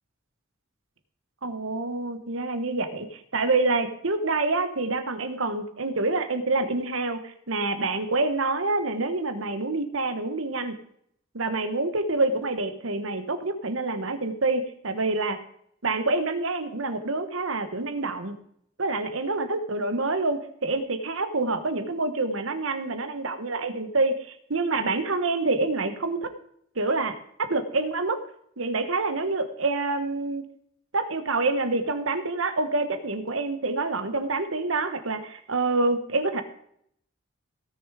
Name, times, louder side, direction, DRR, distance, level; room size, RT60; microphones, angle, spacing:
voice 1, 1.4-10.7 11.3-15.4 15.8-18.3 18.8-26.3 26.7-28.2 28.6-30.4 30.9-36.4, right 3 dB, 70° right, 9 dB, 1.2 m, -27 dB
17.0 x 6.6 x 4.9 m, 0.70 s
head